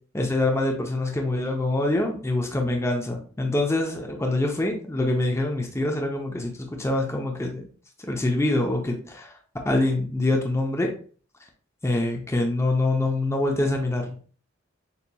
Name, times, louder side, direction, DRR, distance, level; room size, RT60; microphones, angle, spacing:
voice 1, 0.1-7.7 8.1-9.3 9.6-10.9 11.8-14.2, left 2 dB, 15° left, 1 dB, 0.6 m, -25 dB
6.7 x 2.9 x 2.3 m, 0.42 s
head